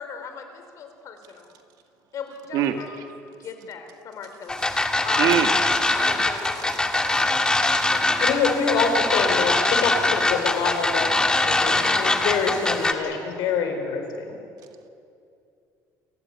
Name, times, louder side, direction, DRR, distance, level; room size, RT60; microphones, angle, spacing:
voice 1, 0.0-1.5 2.1-5.6 6.0-6.6 9.7-10.0, left 6 dB, 50° left, 6 dB, 3.9 m, -38 dB
sound 1, 4.5-12.9, left 2 dB, 10° left, 1.7 m, -22 dB
voice 2, 5.2-5.5 5.8-6.0 6.7-7.2 7.8-8.0, right 11 dB, 70° right, 6 dB, 2.0 m, -25 dB
voice 3, 7.9-11.1 11.4-14.4, left 5 dB, 75° left, 5 dB, 4.8 m, -26 dB
29.0 x 15.0 x 9.8 m, 2.6 s
cardioid pair, 135°, 7 cm